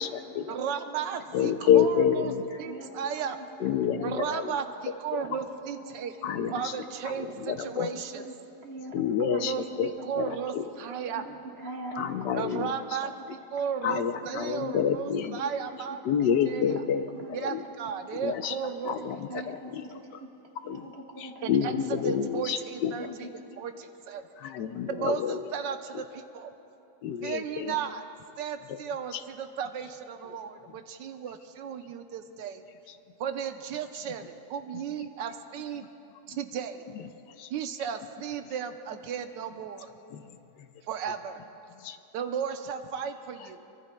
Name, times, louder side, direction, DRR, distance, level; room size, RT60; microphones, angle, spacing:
voice 1, 0.5-3.4 4.0-6.1 6.5-8.3 9.2-11.2 12.3-16.0 16.4-16.8 17.3-19.4 21.4-23.3 23.6-24.2 24.9-26.5 27.2-28.0 28.4-32.6 33.2-35.8 36.3-36.8 37.5-39.9 40.9-41.4 42.1-43.6, right 7 dB, 90° right, 7 dB, 1.4 m, -35 dB
voice 2, 1.3-2.4 3.6-4.5 6.2-6.5 7.4-7.9 8.9-9.5 9.8-9.9 10.2-10.6 12.0-12.8 13.8-15.4 16.1-17.1 17.5-17.6 18.2-18.5 18.9-19.2 19.5-19.8 20.7-20.8 21.5-22.9 24.4-25.4 27.0-27.7 37.4-37.5 40.1-40.2 41.8-42.0, left 8 dB, 75° left, 9 dB, 1.3 m, -27 dB
voice 3, 2.1-3.4 5.2-5.9 6.3-6.6 7.5-8.2 8.6-10.1 10.8-12.7 13.6-13.7 14.2-15.1 15.4-15.5 16.6-17.7 18.2-18.3 18.9-21.7 23.0-23.6, right 2 dB, 35° right, 0 dB, 1.6 m, -44 dB
24.0 x 23.0 x 2.2 m, 2.8 s
omnidirectional pair, 1.9 m